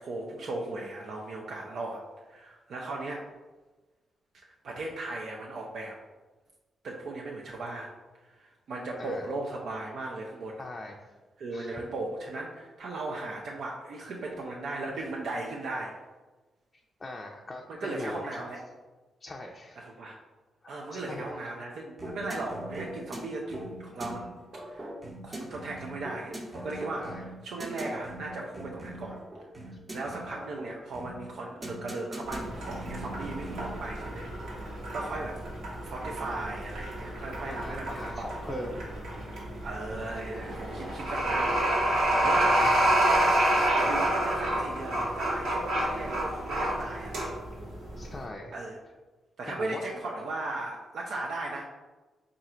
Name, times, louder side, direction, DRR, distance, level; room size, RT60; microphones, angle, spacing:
voice 1, 0.0-2.0 2.3-3.3 4.6-6.0 6.8-7.9 8.2-10.6 11.4-16.0 17.7-18.6 19.8-20.2 20.7-24.9 25.2-29.2 29.9-34.3 34.5-35.4 35.8-38.8 39.6-41.6 41.9-43.5 43.7-47.1 48.5-48.8 49.4-51.7, right 2 dB, 70° right, -1 dB, 0.5 m, -37 dB
voice 2, 10.6-11.0 11.5-11.8 17.0-18.5 19.2-19.8 20.6-21.3 25.3-25.5 27.0-27.2 37.5-38.9 41.0-41.1 42.1-42.8 48.0-48.6 49.5-49.8, left 2 dB, 30° left, 0 dB, 0.4 m, -41 dB
sound 1, 22.0-33.8, right 1 dB, 30° right, 0.8 m, -41 dB
sound 2, 32.3-48.2, right 1 dB, 85° right, 1.2 m, -29 dB
3.7 x 2.5 x 4.3 m, 1.2 s
cardioid pair, 85°, 0 cm